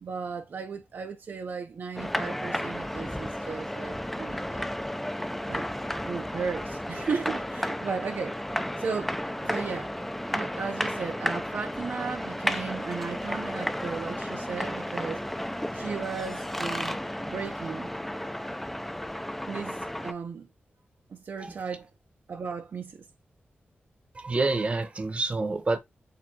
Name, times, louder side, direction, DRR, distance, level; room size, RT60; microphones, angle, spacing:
voice 1, 0.0-4.7 5.5-5.7 6.0-8.3 8.8-9.2 9.4-9.9 10.3-15.2 15.7-17.9 19.5-20.5 21.1-21.9 22.3-23.1, right 5 dB, 55° right, 0.5 m, -35 dB
sound 1, 2.0-20.1, left 1 dB, 5° left, 0.3 m, -33 dB
voice 2, 24.1-25.8, right 3 dB, 30° right, 0.8 m, -28 dB
7.5 x 2.6 x 2.6 m
wide cardioid pair, 135°, 4 cm